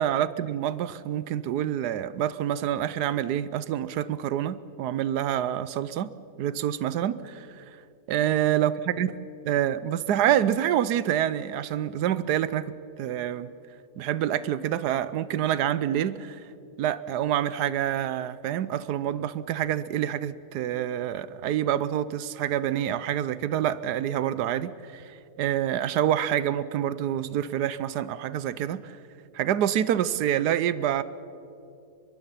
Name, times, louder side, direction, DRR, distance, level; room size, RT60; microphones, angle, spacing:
voice 1, 0.0-6.1 6.4-7.6 8.1-9.1 9.4-12.7 13.0-13.5 14.0-16.4 16.8-29.0 29.3-31.0, right 10 dB, 85° right, 16 dB, 1.3 m, -27 dB
24.0 x 22.0 x 5.7 m, 2.6 s
omnidirectional pair, 1.7 m